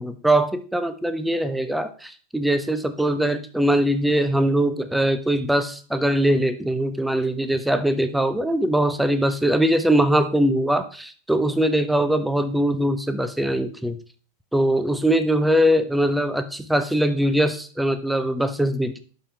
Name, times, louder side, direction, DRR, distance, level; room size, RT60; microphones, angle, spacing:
voice 1, 0.0-14.0 14.5-19.0, right 1 dB, 5° right, 10 dB, 0.6 m, -21 dB
11.5 x 4.3 x 3.4 m, 0.40 s
figure-of-eight pair, 90°, 0 cm